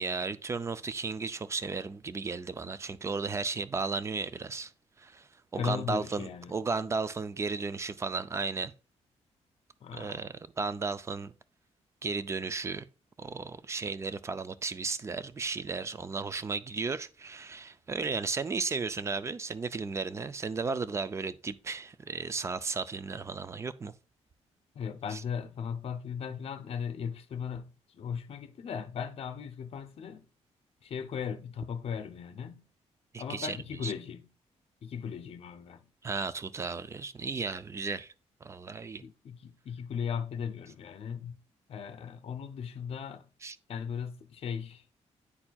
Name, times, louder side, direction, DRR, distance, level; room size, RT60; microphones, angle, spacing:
voice 1, 0.0-4.7 5.0-8.7 9.9-11.3 12.0-12.9 13.2-23.9 25.1-25.2 33.1-33.6 33.8-33.9 36.0-38.1 38.4-39.0 43.4-43.6, right 4 dB, 25° right, 0.4 m, -34 dB
voice 2, 5.6-6.5 9.8-10.3 24.8-30.3 30.8-32.6 33.2-34.3 34.8-35.8 39.0-41.4 41.7-43.2 43.7-44.8, left 7 dB, 55° left, 0.7 m, -37 dB
9.7 x 4.3 x 2.3 m
cardioid pair, 120°, 12 cm